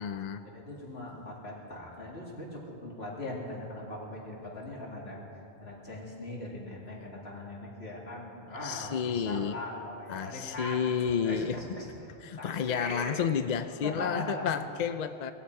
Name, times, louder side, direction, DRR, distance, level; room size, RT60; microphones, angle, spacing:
voice 1, 0.0-0.4 8.6-9.6 10.1-11.6 12.2-15.3, left 7 dB, 50° left, 10 dB, 0.6 m, -31 dB
voice 2, 0.5-11.9 12.3-13.2 13.8-14.6, left 1 dB, 75° left, -3 dB, 2.8 m, -40 dB
18.5 x 14.0 x 4.8 m, 2.8 s
omnidirectional pair, 1.1 m